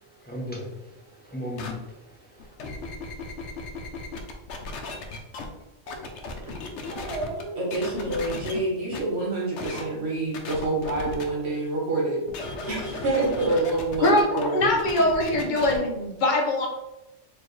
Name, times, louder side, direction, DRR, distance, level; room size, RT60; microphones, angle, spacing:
voice 1, 0.2-2.5, left 1 dB, 10° left, -3 dB, 0.6 m, -37 dB
sound 1, 1.6-1.7 2.4-5.5 5.9-7.4 7.7-8.6 8.9-9.0 9.6-9.8 10.3-11.2 12.3-15.8, left 3 dB, 75° left, 0.9 m, -35 dB
voice 2, 6.9-12.2 12.6-14.6, right 2 dB, 65° right, -4 dB, 1.3 m, -27 dB
voice 3, 14.0-16.7, left 1 dB, 45° left, 1 dB, 0.8 m, -22 dB
4.3 x 2.9 x 3.2 m, 0.98 s
omnidirectional pair, 1.2 m